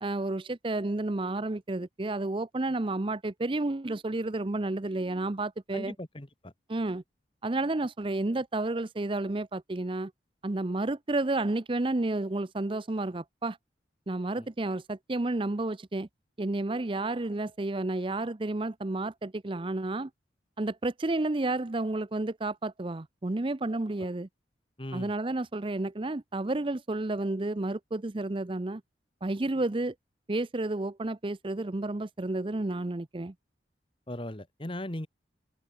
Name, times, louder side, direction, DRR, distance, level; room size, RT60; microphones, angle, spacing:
voice 1, 0.0-5.9 6.7-7.0 7.4-10.1 10.4-13.6 14.1-16.1 16.4-20.1 20.6-24.3 24.9-28.8 29.2-29.9 30.3-33.3, right 2 dB, 30° right, 0.6 m, -31 dB
voice 2, 5.7-6.5 14.4-14.5 24.8-25.1 34.1-35.1, left 1 dB, 30° left, 1.9 m, -38 dB
open air
head